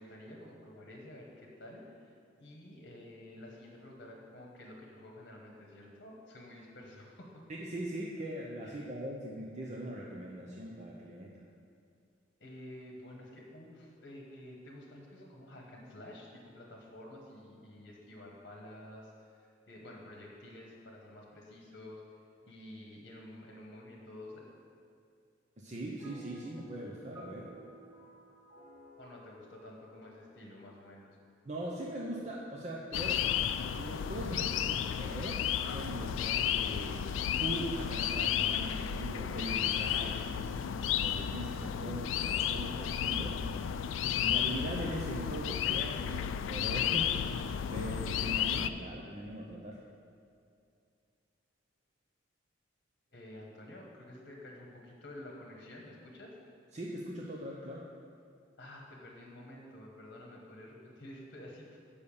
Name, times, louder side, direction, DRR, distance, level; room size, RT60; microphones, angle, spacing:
voice 1, 0.0-7.4 8.6-8.8 12.4-22.0 22.4-24.5 29.0-31.2 53.1-56.3 58.6-61.8, left 1 dB, 50° left, -1 dB, 1.2 m, -50 dB
voice 2, 7.5-11.4 25.6-27.5 31.4-33.3 33.7-37.1 37.4-40.6 41.0-43.5 44.2-47.4 47.7-49.8 56.7-57.9, right 1 dB, 35° right, -3 dB, 0.6 m, -41 dB
sound 1, 26.0-31.5, equal, 15° right, 2.2 m, -57 dB
sound 2, 32.9-48.7, left 9 dB, 80° left, 0.3 m, -33 dB
6.8 x 5.4 x 7.0 m, 2.4 s
head